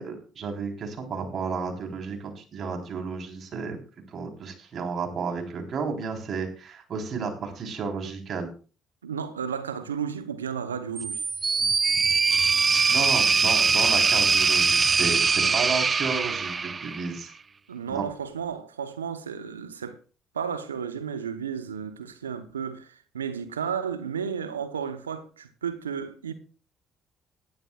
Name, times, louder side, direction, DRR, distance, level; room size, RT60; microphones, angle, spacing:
voice 1, 0.0-3.8 4.1-8.5 12.9-17.3 17.9-18.1, right 5 dB, 50° right, 3.8 m, -32 dB
voice 2, 9.0-11.2 15.4-15.6 17.7-20.0 20.3-26.3, right 7 dB, 90° right, 0.8 m, -33 dB
sound 1, 11.0-17.2, right 5 dB, 35° right, 0.6 m, -22 dB
18.0 x 12.0 x 2.4 m
hypercardioid pair, 50°, 0 cm